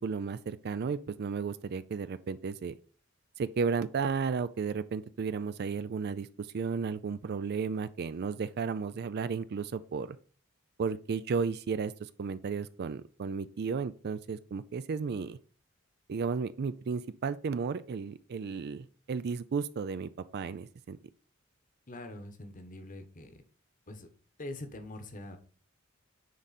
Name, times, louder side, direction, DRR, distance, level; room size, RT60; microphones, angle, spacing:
voice 1, 0.0-2.8 3.4-10.2 10.8-15.4 16.1-21.0, right 5 dB, 50° right, 0.4 m, -34 dB
voice 2, 21.9-23.4 23.9-24.1 24.4-25.4, left 1 dB, 40° left, 1.2 m, -43 dB
9.5 x 3.9 x 4.2 m
head